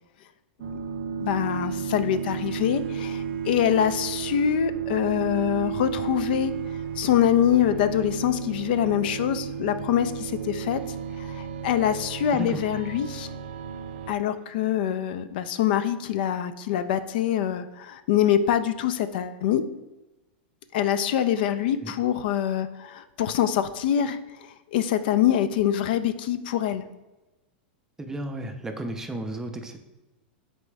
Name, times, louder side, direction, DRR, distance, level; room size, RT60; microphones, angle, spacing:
sound 1, 0.6-14.1, right 7 dB, 75° right, 0.4 m, -33 dB
voice 1, 1.2-6.5 7.0-10.8 11.2-13.3 14.1-19.6 20.7-26.8, left 10 dB, 60° left, 11 dB, 0.3 m, -25 dB
voice 2, 28.0-29.8, right 2 dB, 10° right, 5 dB, 0.4 m, -33 dB
4.0 x 3.5 x 3.2 m, 1.1 s
supercardioid pair, 140°, 6 cm